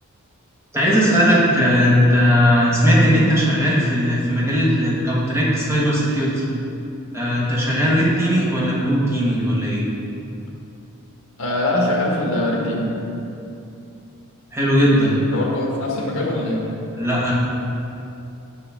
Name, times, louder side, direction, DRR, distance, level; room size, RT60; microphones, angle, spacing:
voice 1, 0.7-6.4 7.1-9.8 14.5-15.2 17.0-17.3, equal, 10° right, -6 dB, 1.2 m, -18 dB
voice 2, 11.4-12.9 15.3-16.6, left 1 dB, 65° left, -2 dB, 1.4 m, -23 dB
7.0 x 6.3 x 3.5 m, 2.8 s
head